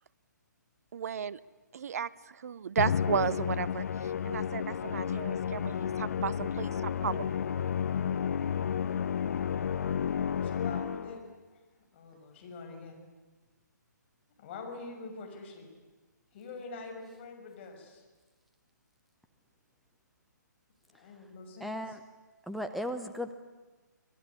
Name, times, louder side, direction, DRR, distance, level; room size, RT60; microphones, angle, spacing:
voice 1, 0.9-1.4 1.7-2.1 2.4-3.8 4.2-7.3, right 7 dB, 55° right, 18 dB, 0.9 m, -33 dB
Musical instrument, 2.8-11.3, left 8 dB, 55° left, 0.9 m, -32 dB
voice 2, 10.4-11.2 11.9-13.0 14.4-15.7 16.3-18.0 20.9-21.7, left 3 dB, 35° left, 3 dB, 6.3 m, -44 dB
voice 3, 21.6-22.0 22.5-23.3, equal, ahead, 9 dB, 0.9 m, -36 dB
25.5 x 20.0 x 9.9 m, 1.3 s
figure-of-eight pair, 140°, 10 cm